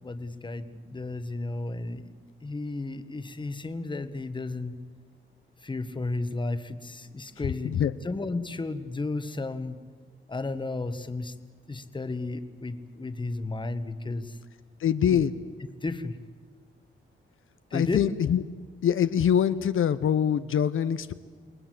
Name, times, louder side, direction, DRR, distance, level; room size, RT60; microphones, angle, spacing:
voice 1, 0.0-2.1 2.4-4.7 5.6-9.8 10.3-11.3 11.7-14.4 15.1-15.2 15.8-16.2 17.7-18.0, left 2 dB, 20° left, 10 dB, 1.3 m, -33 dB
voice 2, 7.4-7.9 14.8-15.3 17.7-18.4 18.8-21.1, left 9 dB, 75° left, 11 dB, 0.8 m, -24 dB
29.0 x 20.0 x 7.8 m, 1.5 s
wide cardioid pair, 115°, 21 cm